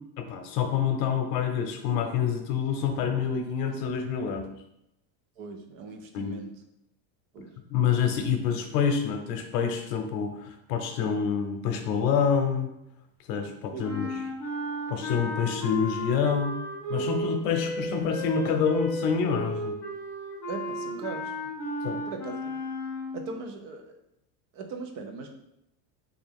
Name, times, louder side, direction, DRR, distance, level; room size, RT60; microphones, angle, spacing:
voice 1, 0.2-4.4 6.1-6.4 7.7-12.7 13.3-14.1 14.9-16.6 16.9-19.7 21.8-22.0, left 7 dB, 80° left, 5 dB, 0.8 m, -27 dB
voice 2, 5.4-6.6 7.3-7.5 13.7-13.8 20.5-21.5 22.1-22.6 23.1-24.0 24.5-25.3, right 4 dB, 50° right, 4 dB, 0.6 m, -39 dB
sound 1, 13.8-23.4, equal, 5° left, 0.3 m, -34 dB
3.4 x 2.5 x 3.5 m, 0.82 s
supercardioid pair, 150°, 48 cm